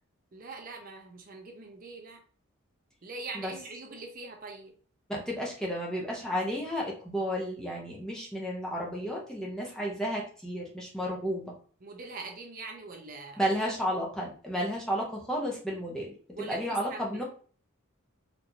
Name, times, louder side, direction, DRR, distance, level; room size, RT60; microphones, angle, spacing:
voice 1, 0.3-2.2 3.0-4.7 11.8-13.4 16.3-17.2, right 3 dB, 40° right, 2 dB, 0.6 m, -43 dB
voice 2, 5.1-11.5 13.4-17.2, equal, 5° left, -3 dB, 0.8 m, -32 dB
4.4 x 2.7 x 2.6 m, 0.42 s
head